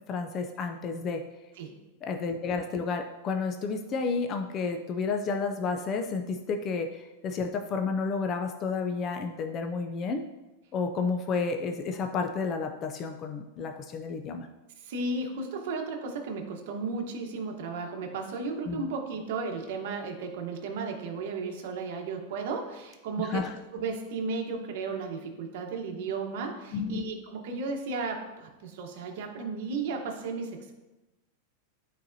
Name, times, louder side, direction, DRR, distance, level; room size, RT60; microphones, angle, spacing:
voice 1, 0.1-1.2 2.0-10.2 10.7-14.5 18.7-18.9 23.2-23.5 26.7-27.0, left 4 dB, 25° left, 4 dB, 0.4 m, -31 dB
voice 2, 14.8-23.5 23.7-30.7, right 4 dB, 55° right, 2 dB, 1.1 m, -34 dB
12.0 x 4.1 x 2.7 m, 1.1 s
supercardioid pair, 175°, 0 cm